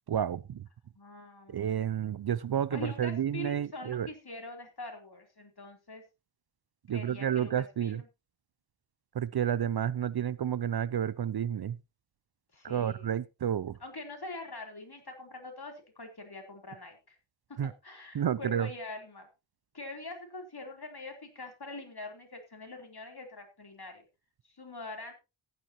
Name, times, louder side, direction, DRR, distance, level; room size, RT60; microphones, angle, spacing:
voice 1, 0.1-0.6 1.5-4.1 6.9-8.0 9.2-11.8 12.6-13.8 17.6-17.7 18.1-18.7, right 9 dB, 50° right, 0.5 m, -30 dB
voice 2, 1.0-2.1 2.7-6.0 6.9-8.1 12.5-13.2 13.8-17.2 17.5-17.6 17.8-19.3 19.7-24.1 24.5-25.1, left 2 dB, 50° left, 3.6 m, -44 dB
15.0 x 10.5 x 2.9 m
wide cardioid pair, 60°, 49 cm